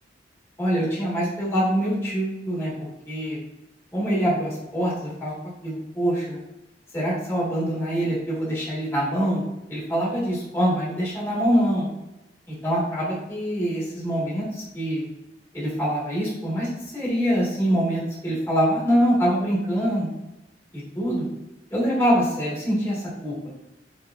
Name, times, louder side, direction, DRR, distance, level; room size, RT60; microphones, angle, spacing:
voice 1, 0.6-2.7 3.1-3.4 3.9-5.3 5.6-6.4 6.9-9.4 9.7-11.9 12.5-15.1 15.5-20.1 20.7-21.2 21.7-23.3, equal, 15° left, -7 dB, 1.4 m, -24 dB
4.5 x 2.9 x 2.3 m, 0.95 s
head